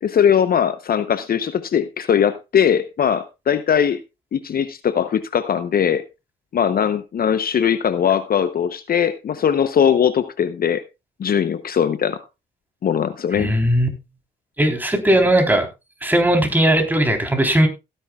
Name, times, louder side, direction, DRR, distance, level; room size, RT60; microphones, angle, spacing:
voice 1, 0.0-4.0 4.3-6.0 6.5-10.8 11.2-12.2 12.8-13.5, left 8 dB, 50° left, 12 dB, 0.8 m, -20 dB
voice 2, 13.3-13.9 14.6-15.7 16.0-17.7, right 1 dB, 10° right, 3 dB, 3.6 m, -18 dB
17.0 x 10.0 x 2.3 m, 0.25 s
cardioid pair, 90°, 20 cm